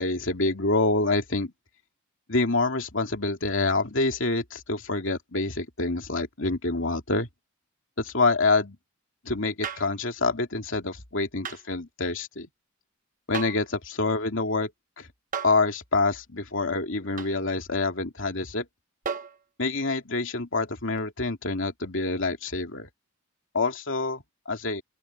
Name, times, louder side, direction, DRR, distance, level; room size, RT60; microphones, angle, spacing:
voice 1, 0.0-1.5 2.3-7.3 8.0-8.8 9.2-12.5 13.3-14.7 15.0-15.1 15.4-18.6 19.6-22.9 23.5-24.2 24.5-24.8, left 3 dB, 60° left, 2.9 m, -26 dB
sound 1, 9.6-10.0 11.4-11.7 13.3-13.7 15.3-15.7 17.2-17.4 19.1-19.4 21.0-21.1, right 6 dB, 35° right, 1.2 m, -34 dB
open air
head